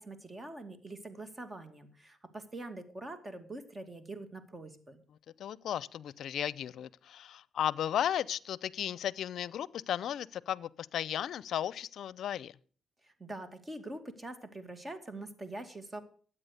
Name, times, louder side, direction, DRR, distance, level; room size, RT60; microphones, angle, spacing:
voice 1, 0.0-5.0 13.0-16.0, right 2 dB, 25° right, 2.3 m, -44 dB
voice 2, 5.4-12.5, left 10 dB, 75° left, 0.5 m, -35 dB
13.5 x 8.8 x 6.7 m
cardioid pair, 75°, 0 cm